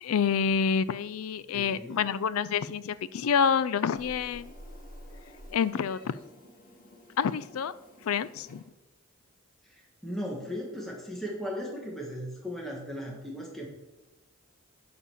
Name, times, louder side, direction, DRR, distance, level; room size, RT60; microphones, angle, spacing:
voice 1, 0.0-4.5 5.5-6.2 7.2-7.7 8.0-8.6, left 6 dB, 85° left, 16 dB, 0.4 m, -27 dB
voice 2, 1.5-2.0 9.6-13.7, equal, ahead, -2 dB, 1.4 m, -37 dB
Meow, 3.9-8.6, equal, 40° left, 1.6 m, -50 dB
9.6 x 4.2 x 6.9 m, 1.1 s
head